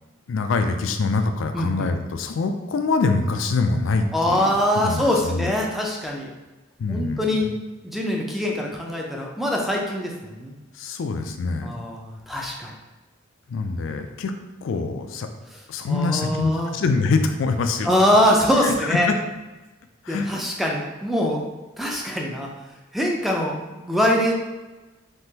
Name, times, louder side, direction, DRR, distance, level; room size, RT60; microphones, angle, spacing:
voice 1, 0.3-5.5 6.8-7.4 10.7-11.7 13.5-14.3 14.6-15.3 15.7-17.9 18.5-19.2 20.0-20.3, left 3 dB, 75° left, 7 dB, 0.4 m, -25 dB
voice 2, 1.5-1.9 4.1-6.3 6.9-7.5 7.8-10.5 11.6-12.7 15.9-16.7 17.9-19.1 20.1-21.4 21.8-22.5 22.9-24.3, left 1 dB, ahead, -1 dB, 0.4 m, -23 dB
3.6 x 2.9 x 2.8 m, 1.1 s
head